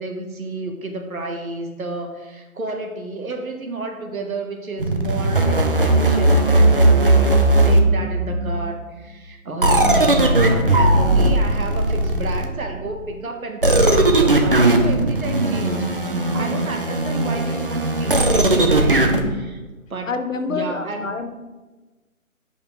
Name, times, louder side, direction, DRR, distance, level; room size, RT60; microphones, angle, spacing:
voice 1, 0.0-7.4 7.6-19.6 19.9-20.2 20.4-21.1, right 2 dB, 75° right, 3 dB, 1.5 m, -31 dB
sound 1, 4.8-8.5 9.6-12.7 13.6-19.2, right 2 dB, 40° right, 0.7 m, -17 dB
voice 2, 16.3-16.7 19.2-19.5 20.1-21.3, left 4 dB, 65° left, 7 dB, 0.9 m, -28 dB
6.7 x 5.5 x 4.5 m, 1.2 s
hypercardioid pair, 175°, 42 cm